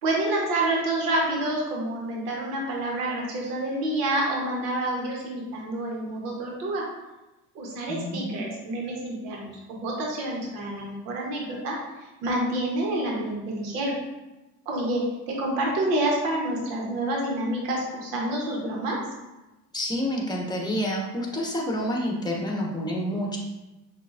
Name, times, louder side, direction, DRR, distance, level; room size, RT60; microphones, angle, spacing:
voice 1, 0.0-6.8 7.5-11.8 12.2-13.9 14.7-19.0, right 1 dB, 90° right, -2 dB, 1.2 m, -28 dB
voice 2, 7.9-8.5 19.7-23.4, equal, 10° left, -2 dB, 1.2 m, -28 dB
6.1 x 2.7 x 2.5 m, 1.0 s
supercardioid pair, 80°, 45 cm